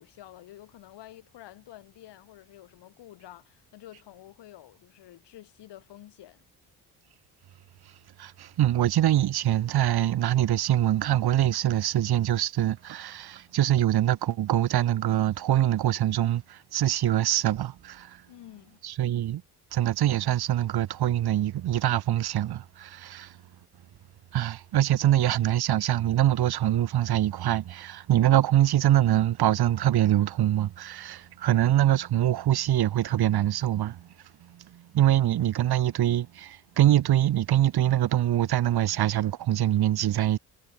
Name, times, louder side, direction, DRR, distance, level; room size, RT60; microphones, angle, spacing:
voice 1, 0.0-6.4 18.3-18.8 25.0-25.3, left 14 dB, 70° left, 6.7 m, -49 dB
voice 2, 8.2-18.2 18.8-19.4 19.7-23.3 24.3-34.1 34.4-40.4, right 12 dB, 60° right, 1.7 m, -24 dB
supercardioid pair, 65°, 43 cm